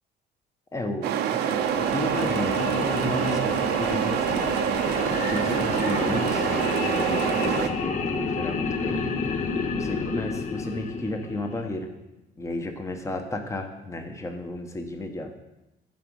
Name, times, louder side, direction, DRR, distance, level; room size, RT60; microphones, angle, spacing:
voice 1, 0.7-4.5 5.3-6.5 6.9-9.1 9.7-11.9 12.4-15.3, left 1 dB, 15° left, 5 dB, 1.0 m, -33 dB
sound 1, 1.0-7.7, right 10 dB, 80° right, 0.8 m, -26 dB
sound 2, 1.4-11.8, left 4 dB, 45° left, 0.9 m, -30 dB
10.5 x 5.0 x 6.3 m, 0.97 s
cardioid pair, 110°, 17 cm